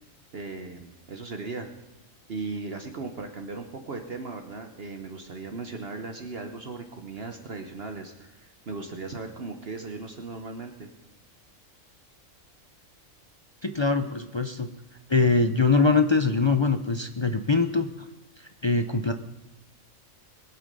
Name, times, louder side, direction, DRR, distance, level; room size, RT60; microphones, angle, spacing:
voice 1, 0.3-1.7 2.3-10.9, right 3 dB, 50° right, 5 dB, 1.1 m, -37 dB
voice 2, 13.6-14.7 15.1-18.1 18.4-19.1, left 4 dB, 45° left, 8 dB, 0.3 m, -23 dB
21.5 x 8.1 x 5.3 m, 1.0 s
omnidirectional pair, 1.4 m